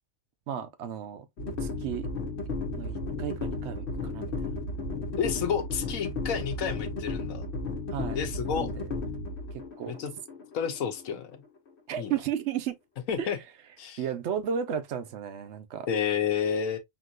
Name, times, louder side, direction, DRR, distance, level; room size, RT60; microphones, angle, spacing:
voice 1, 0.5-2.1 2.7-4.3 7.9-8.2 8.5-8.8 9.5-10.0 11.9-12.8 13.2-13.3 14.0-15.9, right 8 dB, 60° right, 0.9 m, -34 dB
sound 1, 1.4-11.4, left 2 dB, 55° left, 1.1 m, -34 dB
voice 2, 5.2-7.5 8.1-8.7 9.9-10.1 10.5-11.4 12.0-12.1 13.1-13.4 13.8-14.0 15.9-16.8, left 7 dB, 75° left, 1.2 m, -30 dB
5.9 x 2.8 x 2.4 m
omnidirectional pair, 1.5 m